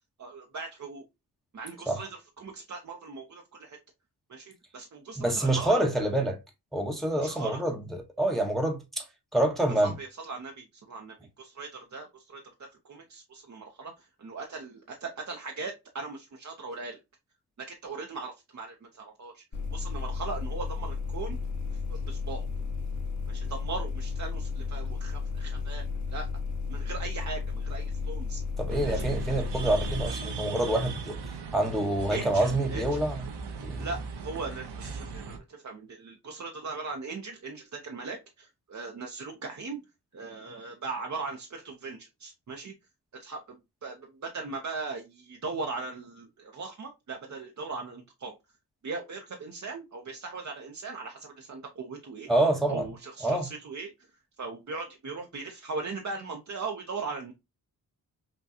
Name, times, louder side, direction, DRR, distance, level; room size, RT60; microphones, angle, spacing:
voice 1, 0.2-1.0 1.5-3.8 4.3-6.0 7.2-7.6 9.7-17.0 17.6-19.4 19.7-21.4 21.7-22.5 23.3-25.8 26.1-26.3 26.7-28.4 28.9-29.1 32.1-32.9 33.8-39.8 40.1-42.7 43.1-48.3 48.8-52.3 52.7-53.9 54.4-57.3, right 4 dB, 45° right, 0.8 m, -39 dB
voice 2, 5.2-6.4 6.7-9.1 9.3-9.9 28.6-31.2 31.5-33.3 33.5-33.9 52.3-52.9 53.2-53.5, right 1 dB, ahead, 0.9 m, -27 dB
sound 1, 19.5-30.1, left 4 dB, 45° left, 1.5 m, -33 dB
sound 2, 28.7-35.4, right 4 dB, 80° right, 1.0 m, -37 dB
6.0 x 2.3 x 2.7 m
wide cardioid pair, 100°, 39 cm